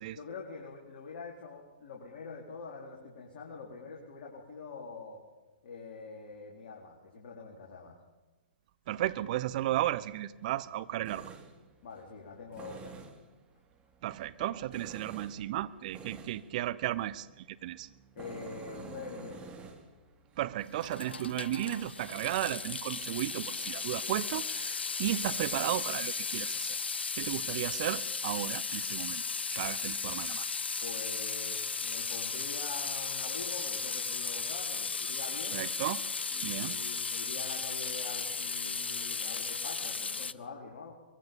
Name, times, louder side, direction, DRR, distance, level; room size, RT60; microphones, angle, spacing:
voice 1, 0.1-5.2 5.6-8.0 11.8-12.9 14.4-14.5 18.1-19.6 27.4-27.7 30.8-35.6 36.3-40.9, left 4 dB, 50° left, -2 dB, 4.2 m, -45 dB
voice 2, 8.9-11.2 14.0-17.9 20.4-26.8 27.1-29.2 29.5-30.5 35.5-36.0 36.4-36.8, right 14 dB, 45° right, 15 dB, 1.0 m, -34 dB
Tools, 9.5-23.6, right 5 dB, 20° right, 2.9 m, -52 dB
Water tap faucet / Sink (filling or washing) / Drip, 20.7-40.3, left 5 dB, 80° left, 0.7 m, -35 dB
23.5 x 22.0 x 5.4 m, 1.2 s
figure-of-eight pair, 120°, 6 cm